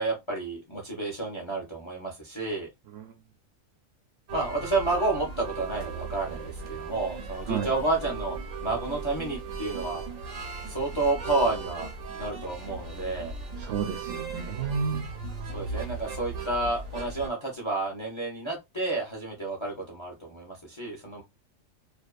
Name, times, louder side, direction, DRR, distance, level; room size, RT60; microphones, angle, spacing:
voice 1, 0.0-2.7 4.3-8.4 8.6-10.0 10.7-11.9 12.2-13.3 15.5-21.2, right 2 dB, 30° left, 0.5 m, -30 dB
sound 1, 4.3-17.3, right 4 dB, 90° right, 1.2 m, -37 dB
voice 2, 13.6-15.1, right 6 dB, 65° right, 0.7 m, -31 dB
2.6 x 2.3 x 2.3 m
omnidirectional pair, 1.4 m